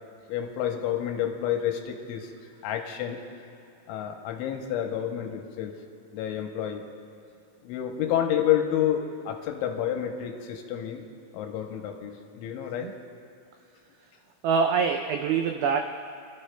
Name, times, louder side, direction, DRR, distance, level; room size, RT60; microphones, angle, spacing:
voice 1, 0.3-3.2 3.9-5.7 6.1-6.8 7.6-11.0 11.3-12.9, left 10 dB, 80° left, 3 dB, 3.1 m, -29 dB
voice 2, 14.4-15.8, right 6 dB, 90° right, 4 dB, 2.4 m, -24 dB
29.5 x 12.0 x 2.2 m, 2.5 s
omnidirectional pair, 5.5 m